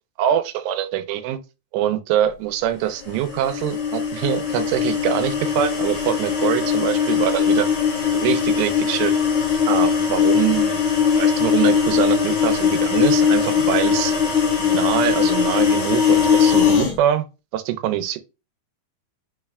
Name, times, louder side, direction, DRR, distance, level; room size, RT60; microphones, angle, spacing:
voice 1, 0.2-1.4 1.7-7.7 8.1-9.1 9.7-10.8 11.2-14.2 14.6-17.2 17.5-18.2, right 11 dB, 85° right, 2.8 m, -24 dB
sound 1, 3.0-17.0, left 7 dB, 90° left, 1.3 m, -20 dB
6.2 x 3.2 x 2.3 m
omnidirectional pair, 4.9 m